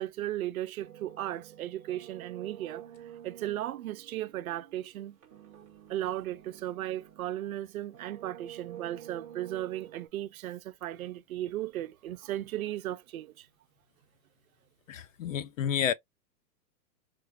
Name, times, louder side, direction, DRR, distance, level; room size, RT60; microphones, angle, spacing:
voice 1, 0.0-2.9 3.2-5.2 5.9-13.5, right 13 dB, 60° right, 0.6 m, -36 dB
sound 1, 0.8-7.5 7.9-10.1, right 10 dB, 10° right, 0.5 m, -49 dB
voice 2, 14.9-15.9, left 9 dB, 55° left, 0.5 m, -30 dB
4.6 x 2.4 x 2.3 m
hypercardioid pair, 155°, 48 cm